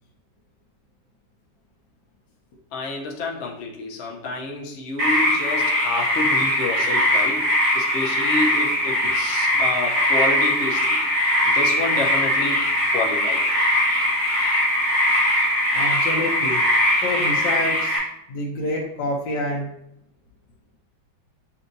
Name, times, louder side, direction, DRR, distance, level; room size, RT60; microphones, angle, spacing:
voice 1, 2.7-7.4 7.7-11.0 11.5-12.6 12.9-13.4, left 3 dB, 55° left, -1 dB, 0.9 m, -29 dB
sound 1, 5.0-18.0, left 1 dB, 75° right, 2.6 m, -21 dB
voice 2, 15.7-16.6 17.0-18.0 18.3-19.7, left 1 dB, 85° left, -2 dB, 1.4 m, -27 dB
7.1 x 2.7 x 2.6 m, 0.77 s
omnidirectional pair, 2.0 m